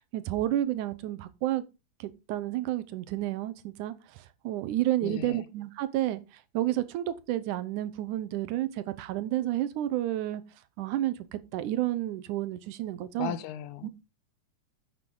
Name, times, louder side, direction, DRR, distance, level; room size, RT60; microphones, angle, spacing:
voice 1, 0.0-1.6 2.0-6.2 6.5-10.4 10.8-13.4 13.8-13.9, right 14 dB, 85° right, 2.3 m, -31 dB
voice 2, 5.0-5.5 13.2-13.9, left 11 dB, 85° left, 2.2 m, -36 dB
9.8 x 7.5 x 3.8 m
omnidirectional pair, 3.5 m